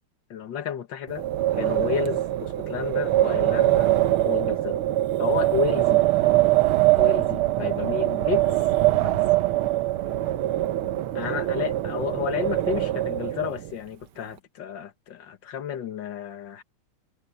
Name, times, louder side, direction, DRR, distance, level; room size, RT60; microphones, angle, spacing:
voice 1, 0.3-1.2 1.6-4.0 4.3-4.8 5.2-6.0 7.0-8.5 9.0-9.2 11.2-16.6, left 8 dB, 60° left, 2.1 m, -31 dB
Wind, 1.1-13.7, right 15 dB, 75° right, 1.7 m, -23 dB
omnidirectional pair, 2.4 m